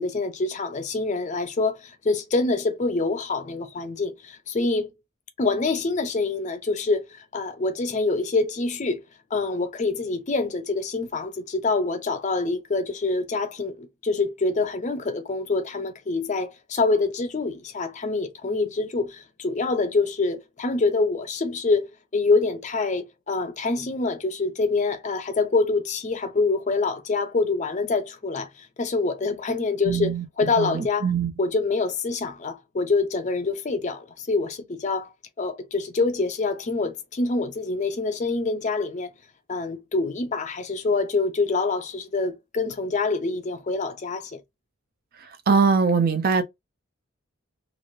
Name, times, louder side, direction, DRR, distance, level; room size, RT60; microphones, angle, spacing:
voice 1, 0.0-4.9 5.4-9.0 9.3-31.1 31.4-35.1 35.4-39.1 39.5-44.4, left 3 dB, 35° left, 0.4 m, -26 dB
voice 2, 29.9-30.2 30.6-31.3 45.5-46.4, right 5 dB, 45° right, 0.5 m, -21 dB
3.1 x 2.5 x 2.5 m
head